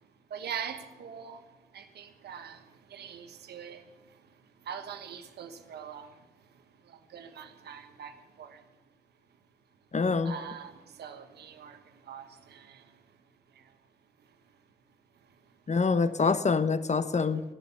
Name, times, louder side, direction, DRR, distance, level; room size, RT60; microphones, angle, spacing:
voice 1, 0.3-1.4 1.7-2.6 2.9-3.8 4.7-6.1 6.9-8.1 8.4-8.6 10.2-11.8 12.0-12.8, right 7 dB, 90° right, 1.2 m, -42 dB
voice 2, 9.9-10.3 15.7-17.4, left 4 dB, 45° left, 1.0 m, -25 dB
15.5 x 11.0 x 6.9 m
supercardioid pair, 40°, 17 cm